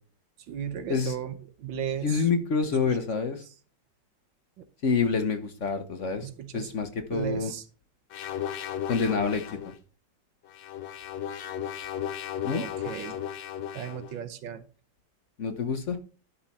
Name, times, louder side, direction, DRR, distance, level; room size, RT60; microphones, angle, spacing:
voice 1, 0.5-2.3 2.7-3.0 3.4-3.5 4.6-4.7 6.2-6.7 7.1-7.7 12.5-13.2 13.7-14.6, right 9 dB, 85° right, 11 dB, 1.7 m, -36 dB
voice 2, 2.0-3.4 4.8-7.5 8.9-9.6 12.4-12.6 15.4-16.0, left 5 dB, 50° left, 8 dB, 1.1 m, -27 dB
sound 1, 8.1-9.7 10.5-14.1, left 10 dB, 90° left, 1.6 m, -35 dB
11.5 x 5.5 x 4.2 m, 0.38 s
omnidirectional pair, 2.0 m